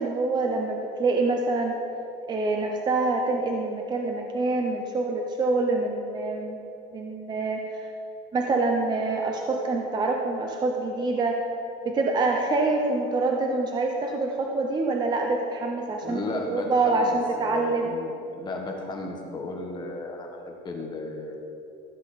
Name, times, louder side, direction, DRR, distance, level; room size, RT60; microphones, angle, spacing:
voice 1, 0.0-1.8 2.3-6.6 6.9-7.9 8.3-11.4 11.8-16.2 16.5-17.9, right 3 dB, 20° right, 2 dB, 0.7 m, -26 dB
voice 2, 16.0-21.4, left 2 dB, 25° left, 1 dB, 1.3 m, -35 dB
14.5 x 8.0 x 4.1 m, 2.8 s
cardioid pair, 155°, 19 cm